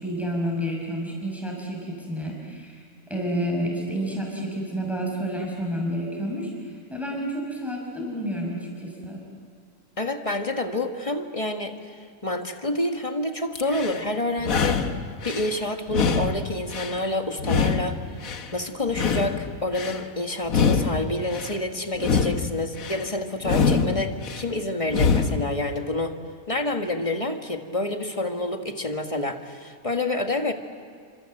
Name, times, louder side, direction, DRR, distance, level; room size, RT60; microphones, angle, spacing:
voice 1, 0.0-9.2, equal, ahead, -1 dB, 6.1 m, -30 dB
voice 2, 10.0-11.9 12.2-14.8 15.2-18.0 18.5-26.1 26.5-30.5, left 2 dB, 25° left, 5 dB, 1.6 m, -28 dB
sound 1, 13.6-14.0 14.4-15.5 15.9-17.0 17.4-18.5 18.9-20.0 20.4-21.5 21.9-23.0 23.4-24.4 24.9-25.5, left 5 dB, 70° left, 1.7 m, -24 dB
29.0 x 26.0 x 7.8 m, 2.3 s
omnidirectional pair, 1.5 m